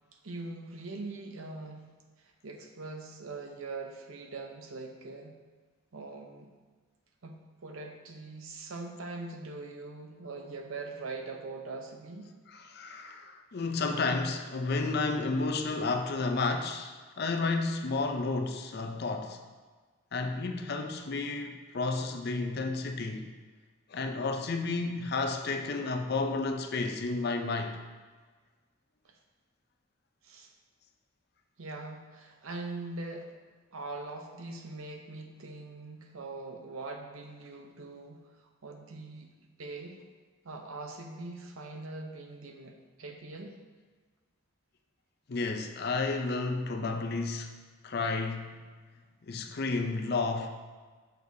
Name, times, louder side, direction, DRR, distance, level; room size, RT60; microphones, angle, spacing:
voice 1, 0.2-1.9 2.2-5.4 5.9-6.5 7.2-12.3 29.0-29.2 30.2-30.5 31.6-33.3 33.7-39.3 39.6-40.0 40.4-43.5, right 3 dB, 80° right, 3 dB, 0.8 m, -42 dB
voice 2, 12.5-19.4 20.1-23.3 23.9-27.8 45.3-47.6 47.8-48.6 49.2-50.5, left 3 dB, 50° left, 5 dB, 0.5 m, -31 dB
6.7 x 6.2 x 2.7 m, 1.4 s
head